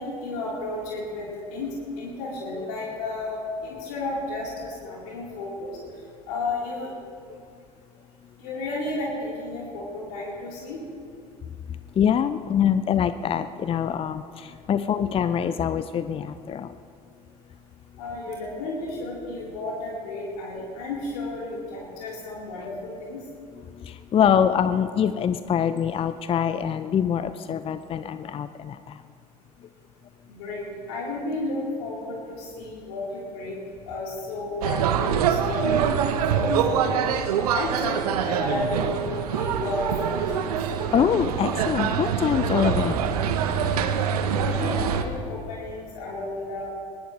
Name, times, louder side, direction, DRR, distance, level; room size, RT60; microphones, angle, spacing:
voice 1, 0.0-1.7 2.0-5.8 6.3-6.9 8.4-10.8 18.0-23.2 30.3-33.6 33.9-35.9 36.3-37.1 37.5-40.5 44.4-46.7, left 2 dB, 60° left, -5 dB, 4.2 m, -32 dB
voice 2, 12.0-14.2 14.7-16.7 24.1-28.8 40.9-43.0, left 8 dB, 25° left, 13 dB, 0.6 m, -24 dB
sound 1, 34.6-45.0, right 7 dB, 70° right, 1.1 m, -25 dB
22.5 x 19.0 x 3.3 m, 2.3 s
figure-of-eight pair, 65°, 20 cm